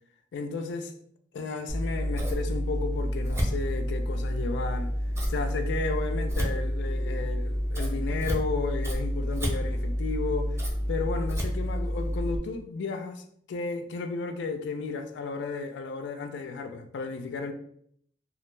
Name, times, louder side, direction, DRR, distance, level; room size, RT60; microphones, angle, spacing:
voice 1, 0.3-0.9 1.3-4.9 5.3-10.6 10.9-17.5, left 4 dB, 70° left, 0.3 m, -33 dB
Scissors, 1.7-12.4, equal, 15° right, 0.5 m, -29 dB
2.2 x 2.0 x 3.1 m
head